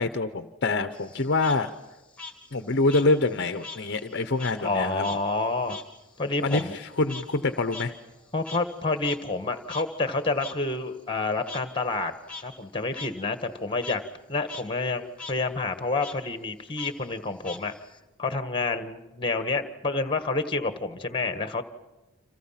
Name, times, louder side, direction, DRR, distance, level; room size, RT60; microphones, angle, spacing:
voice 1, 0.0-1.7 2.5-5.1 6.4-7.9, left 3 dB, 50° left, 9 dB, 0.9 m, -26 dB
Frog, 0.9-3.9 4.2-8.8 9.0-9.2 9.7-9.8 10.4-10.5 11.5-11.6 12.1-12.4 12.9-13.1 13.4-14.0 14.4-14.6 14.9-15.3 16.0-16.1 16.8-18.0, left 3 dB, 5° left, 2.6 m, -41 dB
voice 2, 4.6-5.8 6.2-6.7 8.3-12.1 12.4-14.0 14.3-17.7 18.2-21.6, left 3 dB, 20° left, 9 dB, 1.5 m, -28 dB
29.5 x 27.5 x 5.8 m, 1.1 s
head